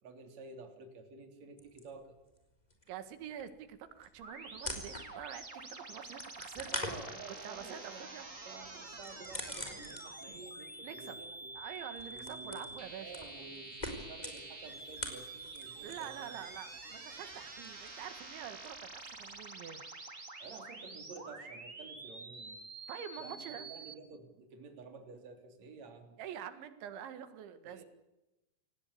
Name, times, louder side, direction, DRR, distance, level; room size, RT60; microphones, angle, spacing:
voice 1, 0.0-2.2 6.7-8.1 8.4-11.5 12.1-12.7 13.0-16.3 20.4-22.6 23.2-26.2 27.6-27.8, right 4 dB, 40° right, 4 dB, 4.0 m, -51 dB
sound 1, 1.6-2.4 2.7-5.4 5.7-10.4 10.7-16.2 16.5-19.5, left 1 dB, 10° left, 4.0 m, -45 dB
voice 2, 2.9-6.7 7.4-8.3 10.8-11.2 11.5-13.1 15.8-19.9 22.9-23.7 26.2-27.8, right 9 dB, 80° right, 10 dB, 4.0 m, -46 dB
sound 2, 4.2-23.9, right 3 dB, 20° right, 2.3 m, -48 dB
28.0 x 19.0 x 8.5 m, 0.98 s
omnidirectional pair, 5.3 m